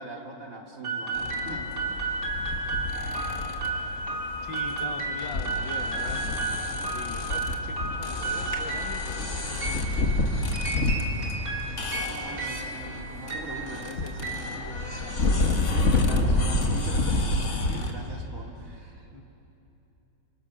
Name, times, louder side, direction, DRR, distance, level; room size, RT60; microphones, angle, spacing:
voice 1, 0.0-1.8 12.0-13.9 15.7-19.1, right 2 dB, 45° right, 0 dB, 3.2 m, -41 dB
sound 1, 0.8-15.3, right 2 dB, 60° right, 3.7 m, -33 dB
sound 2, 1.1-17.9, left 2 dB, 40° left, 2.0 m, -29 dB
voice 2, 4.4-6.2 6.7-10.5 11.2-11.8 13.5-15.5 19.1-19.2, left 4 dB, 90° left, 4 dB, 2.5 m, -43 dB
28.5 x 26.5 x 6.4 m, 2.8 s
omnidirectional pair, 2.0 m